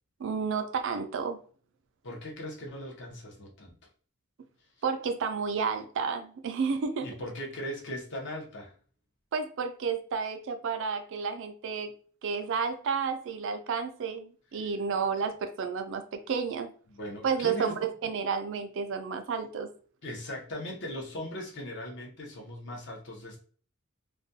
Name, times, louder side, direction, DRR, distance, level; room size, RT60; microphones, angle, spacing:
voice 1, 0.2-1.4 4.8-7.1 9.3-11.9 12.2-16.7 17.2-19.7, right 5 dB, 60° right, 0.3 m, -31 dB
voice 2, 2.0-3.8 7.0-8.7 14.6-14.7 16.9-17.8 20.0-23.4, equal, 55° left, 0.7 m, -39 dB
2.3 x 2.2 x 2.6 m
head